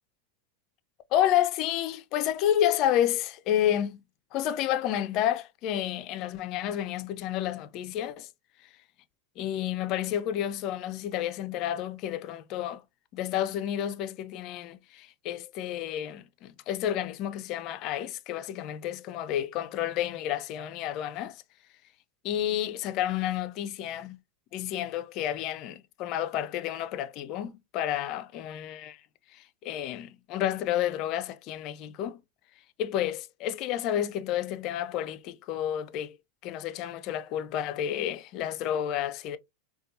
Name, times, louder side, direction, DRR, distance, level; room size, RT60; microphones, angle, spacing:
voice 1, 1.1-4.0 4.3-8.3 9.4-12.8 13.1-21.4 22.2-24.2 24.5-29.0 29.3-32.2 32.8-36.2 36.4-39.4, left 11 dB, 50° left, 0.5 m, -30 dB
4.3 x 2.3 x 2.5 m
hypercardioid pair, 105°, 0 cm